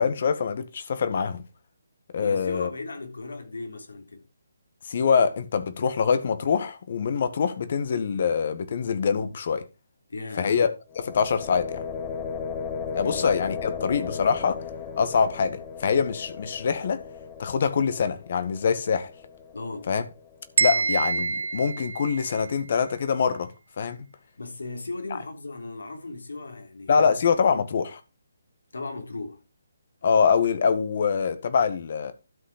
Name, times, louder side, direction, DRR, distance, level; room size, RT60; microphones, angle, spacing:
voice 1, 0.0-1.4 2.1-2.7 4.8-9.6 10.4-11.8 12.9-14.6 15.0-17.0 17.4-19.1 19.9-20.0 20.6-23.5 23.8-24.0 26.9-28.0 30.0-32.1, left 6 dB, 50° left, 1.7 m, -24 dB
voice 2, 2.2-4.2 10.1-10.6 12.9-13.2 19.5-19.9 20.7-20.9 24.4-27.1 28.7-29.4, left 3 dB, 85° left, 3.4 m, -37 dB
sound 1, 10.9-20.7, left 6 dB, 25° left, 1.7 m, -36 dB
sound 2, 20.6-22.6, right 5 dB, 60° right, 1.2 m, -26 dB
12.5 x 5.8 x 5.0 m
hypercardioid pair, 155°, 0 cm